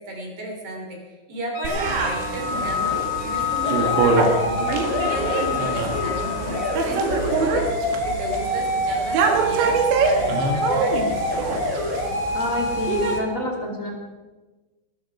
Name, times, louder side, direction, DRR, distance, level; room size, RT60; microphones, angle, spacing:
voice 1, 0.0-11.1, right 2 dB, 35° right, 0 dB, 3.4 m, -34 dB
Wind instrument woodwind instrument, 1.5-6.9, left 10 dB, 75° left, 5.4 m, -28 dB
sound 1, 1.7-13.2, right 4 dB, 70° right, 3.8 m, -25 dB
sound 2, 1.9-13.2, left 1 dB, 50° left, 4.9 m, -27 dB
voice 2, 12.3-13.9, equal, 25° left, 0 dB, 1.8 m, -28 dB
19.0 x 14.0 x 4.9 m, 1.2 s
omnidirectional pair, 5.5 m